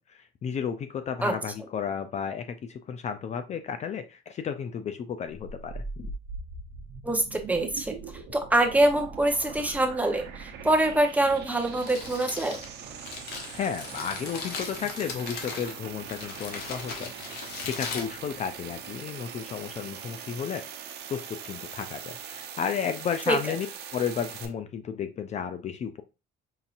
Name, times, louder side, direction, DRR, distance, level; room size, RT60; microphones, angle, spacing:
voice 1, 0.0-6.1 13.5-20.6 21.1-23.7 23.9-26.0, left 7 dB, 40° left, 8 dB, 0.4 m, -33 dB
sound 1, 5.3-24.5, right 6 dB, 75° right, 0.8 m, -41 dB
voice 2, 7.0-7.9 8.3-12.6 23.3-23.4, right 1 dB, 10° right, 3 dB, 0.8 m, -24 dB
Crumpling crinkling, 11.6-18.9, left 5 dB, 75° left, 1.1 m, -39 dB
5.6 x 2.6 x 2.5 m, 0.28 s
cardioid pair, 110°, 17 cm